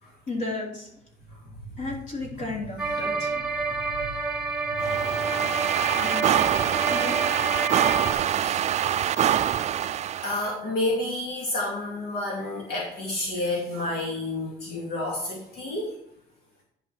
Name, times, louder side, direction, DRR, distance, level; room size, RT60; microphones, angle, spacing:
voice 1, 0.3-0.9 1.8-3.4 6.0-6.3 6.9-7.5 15.6-15.7, left 2 dB, 50° left, -2 dB, 3.5 m, -34 dB
voice 2, 1.3-1.6 4.1-4.2 4.7-5.3 8.0-8.6 10.2-15.9, left 2 dB, 70° left, -3 dB, 2.6 m, -30 dB
sound 1, 2.8-8.1, right 4 dB, 5° right, 1.4 m, -28 dB
sound 2, 4.8-10.5, right 10 dB, 40° right, 0.4 m, -25 dB
10.5 x 5.4 x 4.6 m, 0.78 s
cardioid pair, 110°, 17 cm